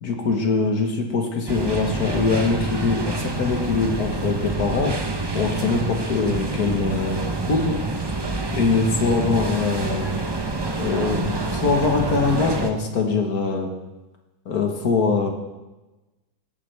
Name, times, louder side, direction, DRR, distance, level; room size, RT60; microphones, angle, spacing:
voice 1, 0.0-5.0 5.3-7.2 7.5-7.8 8.5-10.1 10.8-13.7 14.5-15.3, left 4 dB, 65° left, 3 dB, 1.8 m, -23 dB
sound 1, 1.5-12.7, right 3 dB, 35° right, 0.4 m, -27 dB
16.5 x 8.4 x 3.4 m, 1.1 s
omnidirectional pair, 1.8 m